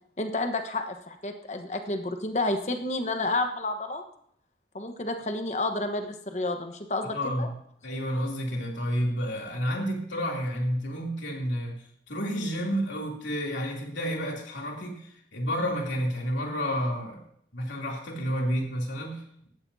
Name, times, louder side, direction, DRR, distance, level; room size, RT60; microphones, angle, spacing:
voice 1, 0.2-4.0 4.7-7.5, left 2 dB, 35° left, 6 dB, 1.1 m, -30 dB
voice 2, 7.1-7.5 7.8-11.7 12.1-15.0 15.3-17.2 17.5-19.5, equal, 80° left, -1 dB, 3.0 m, -30 dB
16.5 x 13.0 x 2.8 m, 0.68 s
head